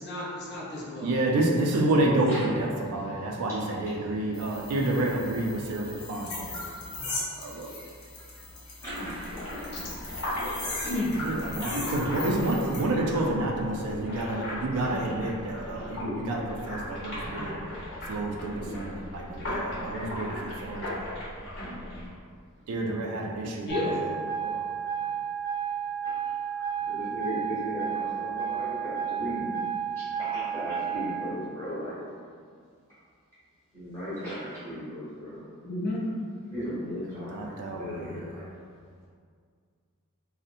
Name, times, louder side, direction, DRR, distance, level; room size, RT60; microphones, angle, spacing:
voice 1, 0.0-1.1 9.7-9.9 10.8-11.2 23.7-24.1 35.6-36.1, left 1 dB, 50° left, -5 dB, 0.5 m, -31 dB
voice 2, 1.0-6.6 7.4-7.7 11.2-17.6 18.1-21.1 22.7-23.8 24.4-24.5 37.3-38.2, right 2 dB, 80° right, 0 dB, 0.4 m, -29 dB
sound 1, 4.3-12.8, left 2 dB, 85° left, 0.7 m, -39 dB
sound 2, 8.8-22.1, left 1 dB, 65° left, 1.1 m, -37 dB
voice 3, 8.8-9.1 15.4-15.5 26.0-26.1 26.8-29.4 30.2-31.9 33.7-35.4 36.5-38.4, equal, 10° left, -13 dB, 1.0 m, -36 dB
sound 3, 23.7-31.3, right 8 dB, 40° right, 0.6 m, -32 dB
2.7 x 2.0 x 2.5 m, 2.1 s
head